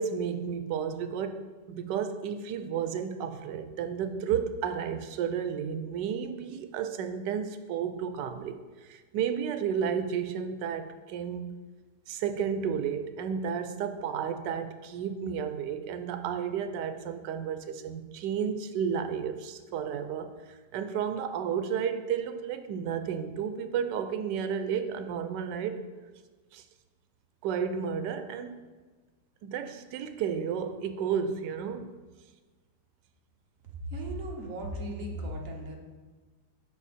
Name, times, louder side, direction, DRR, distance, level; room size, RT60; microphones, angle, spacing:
voice 1, 0.0-11.6 12.1-25.8 26.5-26.6 27.4-28.7 29.4-32.0, right 7 dB, 90° right, 10 dB, 1.2 m, -32 dB
voice 2, 33.9-35.8, equal, 50° right, 0 dB, 1.5 m, -36 dB
8.3 x 5.6 x 4.2 m, 1.3 s
omnidirectional pair, 1.8 m